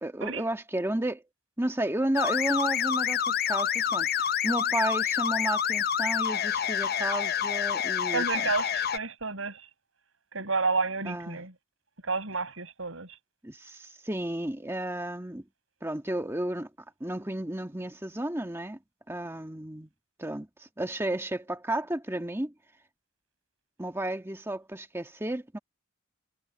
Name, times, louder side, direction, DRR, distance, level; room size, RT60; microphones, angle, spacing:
voice 1, 0.0-1.2 1.6-8.2 11.0-11.4 13.4-15.4 15.8-16.7 17.0-18.8 19.1-19.9 20.2-22.5 23.8-25.6, right 1 dB, 10° right, 1.6 m, -32 dB
sound 1, 2.2-9.0, left 8 dB, 50° left, 0.7 m, -28 dB
voice 2, 8.1-9.7 10.3-11.5 12.0-13.2, right 4 dB, 80° right, 5.3 m, -30 dB
head